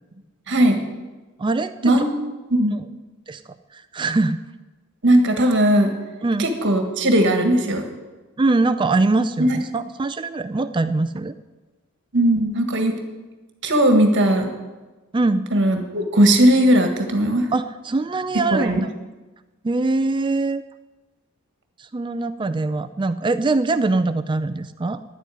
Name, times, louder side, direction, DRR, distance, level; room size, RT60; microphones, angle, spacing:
voice 1, 0.5-0.9 1.8-2.1 2.5-2.8 5.0-5.9 6.4-7.8 9.4-9.6 12.1-12.9 13.6-14.5 15.5-17.5 18.5-18.8, right 1 dB, 55° right, 5 dB, 1.7 m, -18 dB
voice 2, 1.4-2.0 2.7-2.8 3.3-3.4 3.7-4.4 6.2-6.5 8.4-11.3 15.1-15.4 17.5-18.9 19.6-20.6 21.8-25.0, right 3 dB, 20° right, 12 dB, 0.4 m, -22 dB
11.0 x 8.4 x 9.9 m, 1.2 s
head